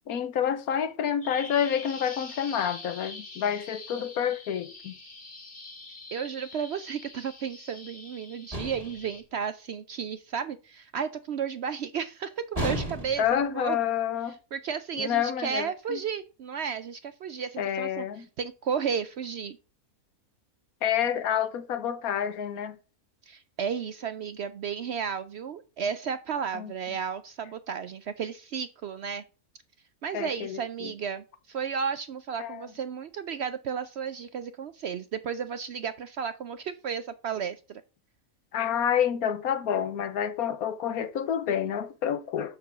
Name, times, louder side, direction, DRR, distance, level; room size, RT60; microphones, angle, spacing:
voice 1, 0.1-4.9 13.2-14.4 15.0-16.0 17.6-18.3 20.8-22.8 26.5-26.7 30.1-30.9 32.4-32.7 38.5-42.6, left 9 dB, 80° left, 1.3 m, -28 dB
Bird vocalization bird call bird song, 1.2-9.2, left 3 dB, 35° left, 2.2 m, -45 dB
voice 2, 6.1-13.8 14.5-18.1 18.4-19.6 23.2-29.2 30.0-37.8, right 7 dB, 65° right, 0.6 m, -33 dB
sound 1, 8.5-9.1 12.5-13.4, equal, 25° right, 2.3 m, -32 dB
7.0 x 6.0 x 6.0 m
omnidirectional pair, 1.5 m